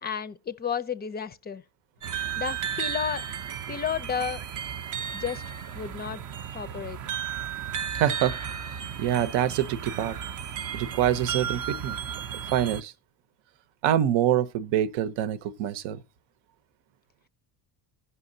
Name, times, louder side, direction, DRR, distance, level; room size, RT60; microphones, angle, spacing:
voice 1, 0.0-1.6 2.4-3.2 3.7-4.4 5.1-5.4 5.7-6.2 6.5-7.0, left 7 dB, 25° left, 0.4 m, -32 dB
sound 1, 2.0-12.8, right 8 dB, 45° right, 0.5 m, -34 dB
voice 2, 7.9-8.3 9.0-10.2 10.7-12.0 12.5-12.9 13.8-16.0, right 11 dB, 85° right, 0.8 m, -25 dB
16.5 x 5.6 x 2.6 m
cardioid pair, 125°, 45 cm